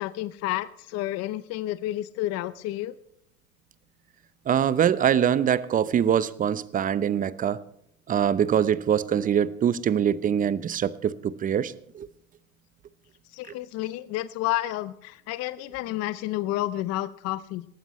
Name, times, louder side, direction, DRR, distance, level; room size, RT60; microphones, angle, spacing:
voice 1, 0.0-3.0 13.3-17.7, left 15 dB, 35° left, 0.7 m, -30 dB
voice 2, 4.5-7.6 8.1-12.1, right 9 dB, 20° right, 0.7 m, -24 dB
19.5 x 14.5 x 3.1 m
hypercardioid pair, 100°, 43 cm